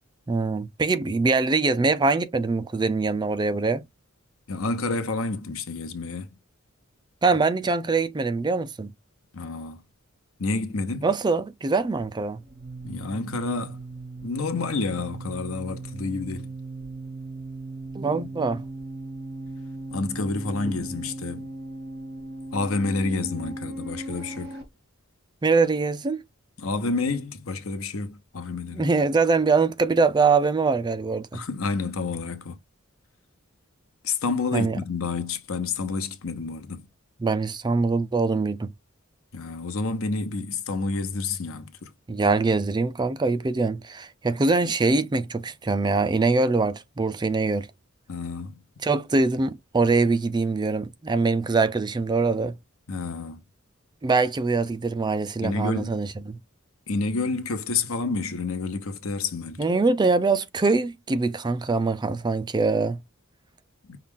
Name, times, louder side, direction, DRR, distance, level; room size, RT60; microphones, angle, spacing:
voice 1, 0.3-3.8 7.2-8.9 11.0-12.4 17.9-18.6 25.4-26.2 28.7-31.4 34.5-34.8 37.2-38.7 42.1-47.7 48.8-52.5 54.0-56.4 59.6-63.0, right 3 dB, 20° right, 0.4 m, -23 dB
voice 2, 4.5-6.3 9.3-9.8 10.4-11.1 12.8-13.8 14.2-16.5 19.9-21.5 22.5-24.6 26.6-28.9 31.3-32.6 34.0-36.9 39.3-41.9 48.1-48.6 52.9-53.4 55.4-55.9 56.9-59.7 63.9-64.0, left 3 dB, 80° left, 0.9 m, -29 dB
sound 1, 11.8-24.6, right 2 dB, 50° right, 2.2 m, -38 dB
5.6 x 2.4 x 3.6 m
head